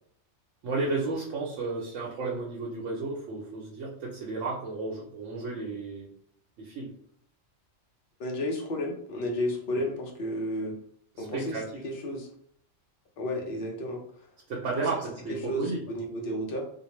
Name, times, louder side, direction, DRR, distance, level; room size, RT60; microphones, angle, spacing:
voice 1, 0.6-6.1 6.6-6.9 11.1-11.7 14.5-15.8, right 3 dB, 75° right, -3 dB, 0.9 m, -33 dB
voice 2, 8.2-10.8 11.2-12.3 13.2-14.3 14.8-14.9 15.3-16.6, left 1 dB, 55° left, 1 dB, 0.7 m, -32 dB
2.5 x 2.1 x 2.9 m, 0.66 s
omnidirectional pair, 1.3 m